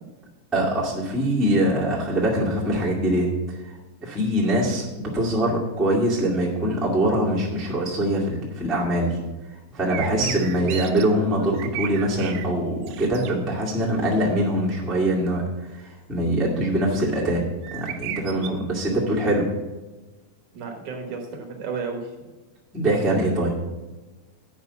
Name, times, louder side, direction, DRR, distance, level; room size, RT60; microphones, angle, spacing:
voice 1, 0.5-3.3 4.0-9.2 9.7-15.4 15.7-17.4 17.7-19.5 22.7-23.5, right 1 dB, ahead, -5 dB, 0.5 m, -23 dB
sound 1, 9.9-11.0 11.4-12.5 12.8-13.3 17.6-18.5, right 11 dB, 85° right, 2.5 m, -34 dB
voice 2, 10.1-10.5 20.5-22.1, right 4 dB, 65° right, 2 dB, 2.2 m, -32 dB
9.0 x 5.3 x 7.0 m, 1.2 s
omnidirectional pair, 4.3 m